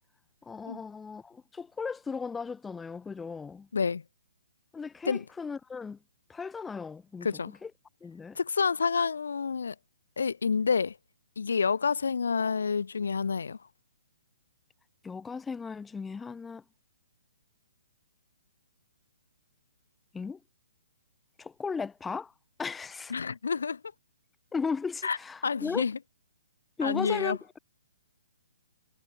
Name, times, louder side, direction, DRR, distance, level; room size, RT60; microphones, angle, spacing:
voice 1, 0.4-3.7 4.7-6.0 6.3-7.7 8.0-8.4 15.0-16.6 20.1-20.4 21.4-22.3 22.6-23.1 24.5-25.9 26.8-27.4, left 5 dB, 5° left, 5.9 m, -36 dB
voice 2, 3.7-4.0 5.0-5.2 7.2-7.5 8.3-9.7 10.2-11.0 11.4-13.6 23.1-23.8 25.0-25.2 25.4-26.0 26.8-27.4, left 5 dB, 85° left, 1.0 m, -28 dB
hypercardioid pair, 160°, 0 cm